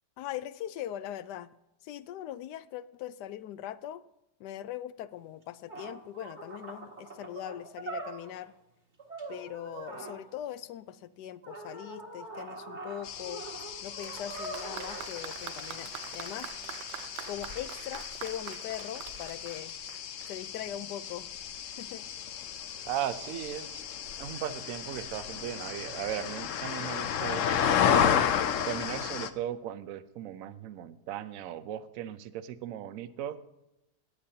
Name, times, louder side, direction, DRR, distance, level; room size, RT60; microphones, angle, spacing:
voice 1, 0.2-1.5 1.8-4.0 4.4-8.5 9.3-13.4 13.8-16.5 17.3-19.7 20.3-21.3 21.7-22.1, left 11 dB, 80° left, 15 dB, 1.2 m, -41 dB
sound 1, 5.4-5.5 5.7-8.5 9.0-10.2 11.4-15.2, right 2 dB, 40° right, 2.1 m, -42 dB
sound 2, 13.0-29.3, left 8 dB, 60° left, 0.9 m, -33 dB
Applause, 14.0-20.5, right 11 dB, 90° right, 1.2 m, -45 dB
voice 2, 22.9-23.8 24.2-28.1 28.6-33.4, right 11 dB, 65° right, 13 dB, 0.9 m, -37 dB
16.5 x 10.0 x 2.8 m, 0.92 s
omnidirectional pair, 1.8 m